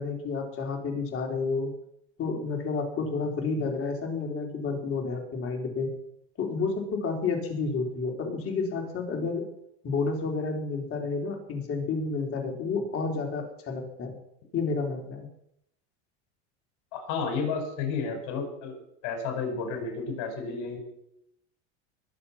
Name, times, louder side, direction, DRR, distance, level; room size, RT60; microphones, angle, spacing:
voice 1, 0.0-1.7 2.2-5.9 6.4-9.4 9.8-14.2 14.5-15.3, left 4 dB, 40° left, 2 dB, 4.1 m, -30 dB
voice 2, 16.9-18.7 19.0-20.8, left 5 dB, 65° left, 4 dB, 5.4 m, -31 dB
21.5 x 7.8 x 5.9 m, 0.75 s
supercardioid pair, 110°, 34 cm